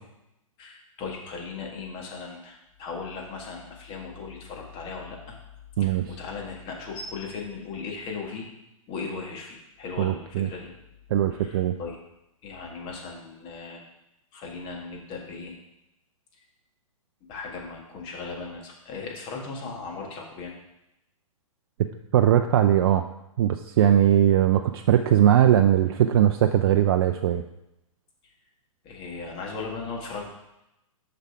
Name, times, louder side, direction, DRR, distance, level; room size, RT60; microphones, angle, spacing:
voice 1, 0.6-5.4 5.8-8.5 8.9-10.7 11.4-12.0 12.4-13.8 14.3-15.5 17.3-20.5 28.8-30.3, left 4 dB, 30° left, 0 dB, 1.7 m, -37 dB
voice 2, 5.8-6.2 10.0-10.5 11.1-11.7 22.1-23.0 23.4-27.4, right 10 dB, 45° right, 7 dB, 0.4 m, -20 dB
6.6 x 6.0 x 4.6 m, 0.89 s
figure-of-eight pair, 120°, 18 cm